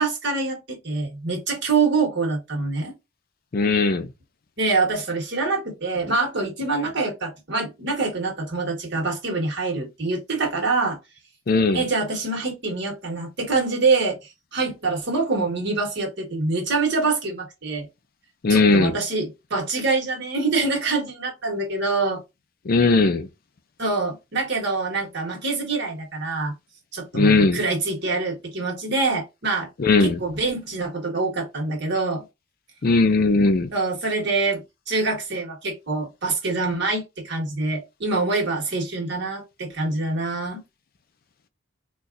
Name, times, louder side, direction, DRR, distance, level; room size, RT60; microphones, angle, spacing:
voice 1, 0.0-2.9 4.6-11.0 11.7-17.9 18.5-22.2 23.8-26.5 26.9-29.7 30.0-32.2 33.7-40.6, right 3 dB, 55° right, 1.4 m, -25 dB
voice 2, 3.5-4.1 11.5-11.8 18.4-19.0 22.7-23.3 27.1-27.6 29.8-30.2 32.8-33.7, left 3 dB, 45° left, 0.4 m, -18 dB
4.0 x 2.4 x 2.5 m
head